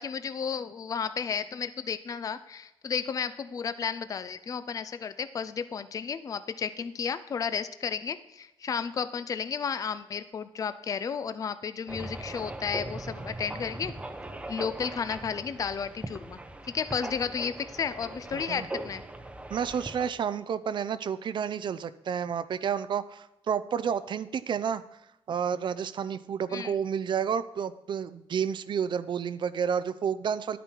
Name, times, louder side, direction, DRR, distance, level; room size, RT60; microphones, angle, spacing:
voice 1, 0.0-13.9 14.5-16.4 16.7-19.0 26.5-26.7, left 6 dB, 35° left, 13 dB, 0.5 m, -33 dB
sound 1, 11.9-20.1, right 1 dB, 10° right, 0.8 m, -40 dB
voice 2, 18.3-18.7 19.5-24.8 25.3-30.6, right 7 dB, 50° right, 14 dB, 0.5 m, -30 dB
11.0 x 9.2 x 4.5 m, 0.92 s
wide cardioid pair, 145°, 10 cm